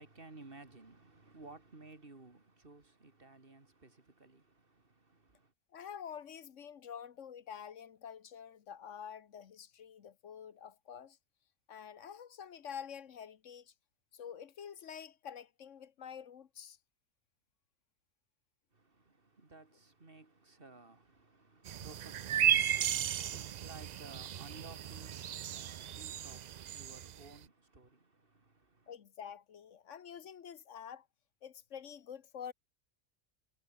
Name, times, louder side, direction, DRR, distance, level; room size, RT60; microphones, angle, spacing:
voice 1, 0.0-5.5 18.7-28.9, right 3 dB, 45° right, 3.1 m, -56 dB
voice 2, 5.7-11.2 11.7-13.7 14.1-16.8 28.9-31.1 31.4-32.5, left 8 dB, 75° left, 1.4 m, -48 dB
sound 1, 21.7-27.2, right 10 dB, 90° right, 0.3 m, -34 dB
omnidirectional pair, 1.3 m